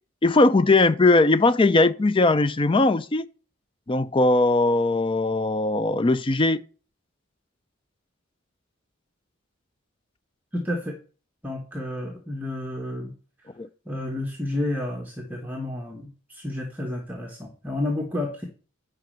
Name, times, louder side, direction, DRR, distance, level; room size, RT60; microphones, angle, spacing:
voice 1, 0.2-3.3 3.9-6.6 13.6-13.7, left 2 dB, 25° left, 0.4 m, -19 dB
voice 2, 10.5-11.0 11.4-13.1 13.9-18.4, left 1 dB, 10° right, 1.2 m, -31 dB
9.5 x 5.1 x 6.5 m
head